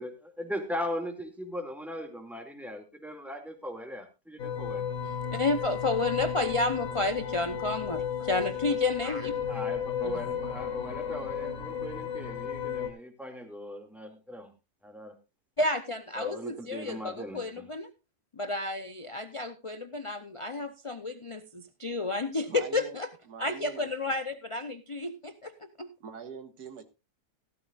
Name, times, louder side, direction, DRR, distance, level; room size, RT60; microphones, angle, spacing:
voice 1, 0.0-4.8 9.5-14.5 14.8-15.1 16.1-17.7, left 1 dB, ahead, 4 dB, 2.2 m, -39 dB
sound 1, 4.4-12.9, left 7 dB, 65° left, 2.0 m, -34 dB
voice 2, 5.3-9.5 10.0-10.2 15.6-17.9 18.3-23.1 23.4-25.9, left 2 dB, 45° left, 10 dB, 0.4 m, -31 dB
voice 3, 22.5-23.0 23.3-23.9 26.0-26.8, right 6 dB, 85° right, 8 dB, 2.0 m, -43 dB
15.5 x 13.0 x 2.4 m, 0.26 s
omnidirectional pair, 1.7 m